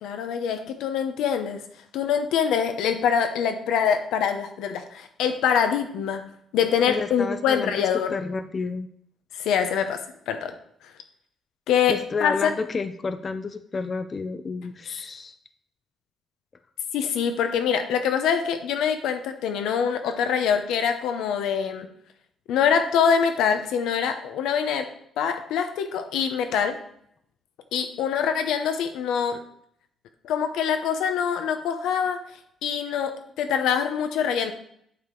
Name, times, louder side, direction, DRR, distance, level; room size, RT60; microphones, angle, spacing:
voice 1, 0.0-1.6 1.9-8.1 9.4-10.6 11.7-12.5 16.9-21.9 22.5-24.9 25.2-26.8 27.7-29.4 30.2-32.2 32.6-34.5, left 7 dB, 85° left, 7 dB, 0.8 m, -24 dB
voice 2, 6.9-8.9 11.9-15.3, left 4 dB, 40° left, 10 dB, 0.4 m, -30 dB
8.4 x 4.6 x 3.9 m, 0.69 s
cardioid pair, 90°, 0 cm